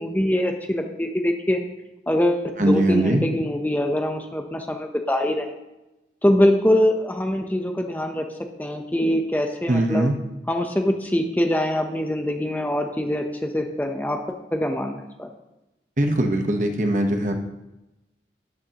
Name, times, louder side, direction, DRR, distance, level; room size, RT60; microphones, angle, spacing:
voice 1, 0.0-1.6 2.1-5.5 6.2-8.3 8.6-10.1 10.5-14.2 14.5-15.3, left 1 dB, 10° left, 4 dB, 0.7 m, -23 dB
voice 2, 2.6-3.2 9.7-10.2 16.0-17.4, right 1 dB, 45° right, 4 dB, 1.0 m, -21 dB
13.0 x 9.7 x 2.9 m, 0.97 s
head